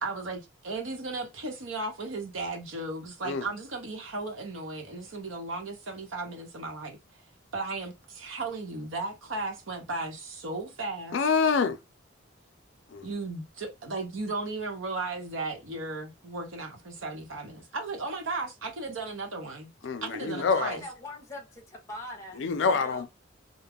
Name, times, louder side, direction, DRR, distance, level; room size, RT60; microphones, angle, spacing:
voice 1, 0.0-7.0 7.5-11.2 13.0-19.7 20.0-20.8, right 3 dB, 85° right, 0.8 m, -35 dB
voice 2, 11.1-11.8 12.9-13.1 19.8-20.8 22.4-23.1, left 5 dB, 65° left, 0.4 m, -26 dB
voice 3, 20.2-23.1, left 1 dB, 15° left, 0.7 m, -43 dB
2.3 x 2.0 x 3.4 m
head